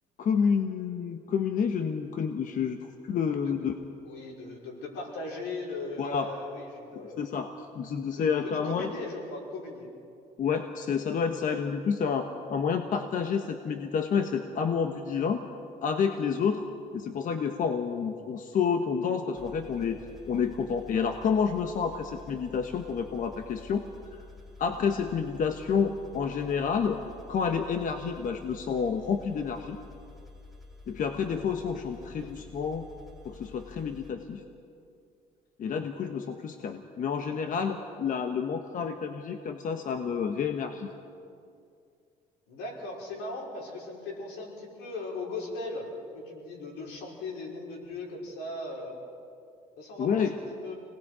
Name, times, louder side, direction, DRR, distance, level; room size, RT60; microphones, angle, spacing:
voice 1, 0.2-3.8 6.0-6.3 6.9-8.9 10.4-15.4 15.8-16.7 16.9-23.8 24.1-24.2 24.6-27.0 27.3-29.8 30.9-32.9 33.2-34.4 35.6-40.9 50.0-50.3, left 6 dB, 50° left, 6 dB, 1.2 m, -29 dB
voice 2, 4.0-7.2 8.2-9.9 31.9-32.3 42.5-45.9 46.1-49.0 49.8-50.8, left 2 dB, 90° left, -2 dB, 5.2 m, -38 dB
sound 1, 19.3-34.1, left 3 dB, ahead, 3.1 m, -49 dB
29.0 x 19.5 x 4.9 m, 2.4 s
cardioid pair, 110°, 17 cm